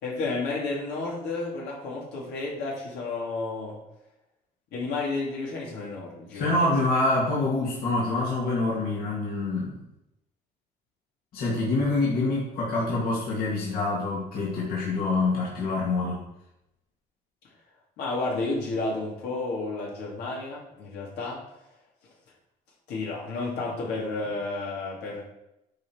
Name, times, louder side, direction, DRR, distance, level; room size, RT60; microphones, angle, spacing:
voice 1, 0.0-3.8 4.7-6.7 18.0-21.4 22.9-25.2, left 3 dB, 80° left, -4 dB, 2.8 m, -31 dB
voice 2, 6.3-9.8 11.3-16.2, left 2 dB, 65° left, -5 dB, 2.4 m, -26 dB
9.3 x 4.5 x 4.7 m, 0.87 s
cardioid pair, 110°, 17 cm